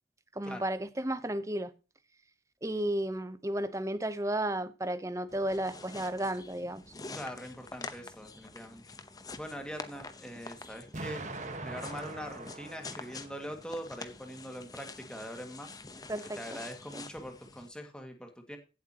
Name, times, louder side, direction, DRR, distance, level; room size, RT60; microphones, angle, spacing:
voice 1, 0.4-1.7 2.6-6.8 16.1-16.4 16.9-17.0, right 1 dB, 15° right, 0.7 m, -33 dB
sound 1, 5.3-17.7, left 3 dB, 20° left, 0.8 m, -47 dB
voice 2, 7.1-8.9 9.4-11.2 11.6-15.7 16.4-18.6, equal, 5° left, 1.9 m, -42 dB
Explosion, 10.9-13.9, right 2 dB, 40° right, 1.4 m, -42 dB
16.5 x 7.9 x 2.9 m
head